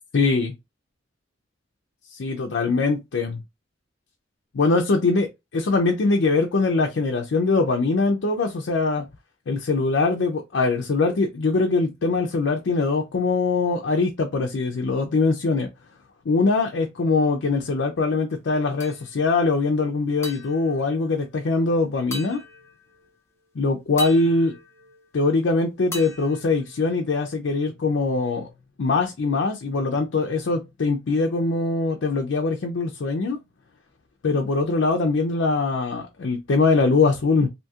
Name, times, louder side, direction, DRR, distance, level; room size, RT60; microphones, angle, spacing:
voice 1, 0.1-0.5 2.1-3.4 4.5-5.3 5.5-9.0 9.5-15.7 16.3-22.4 23.6-24.5 25.1-28.5 28.8-33.4 34.2-37.5, left 3 dB, 75° left, 0.5 m, -22 dB
sound 1, 18.8-19.4 20.2-21.7 22.1-23.1 24.0-25.5 25.9-27.3, left 1 dB, 15° left, 0.5 m, -40 dB
2.7 x 2.7 x 2.3 m
head